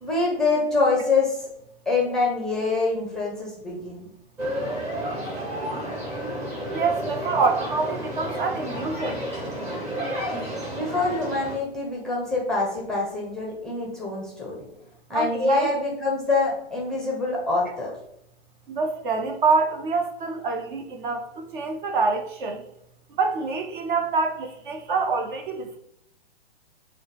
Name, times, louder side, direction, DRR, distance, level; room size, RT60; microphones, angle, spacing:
voice 1, 0.0-1.5 1.9-4.0 10.7-14.6 15.1-17.9, left 3 dB, ahead, -2 dB, 0.5 m, -25 dB
sound 1, 4.4-11.6, equal, 20° right, 1.1 m, -31 dB
voice 2, 6.7-9.2 15.1-15.7 18.7-22.6 23.1-25.8, right 4 dB, 50° right, 4 dB, 0.8 m, -25 dB
6.2 x 2.2 x 3.3 m, 0.75 s
hypercardioid pair, 125°, 31 cm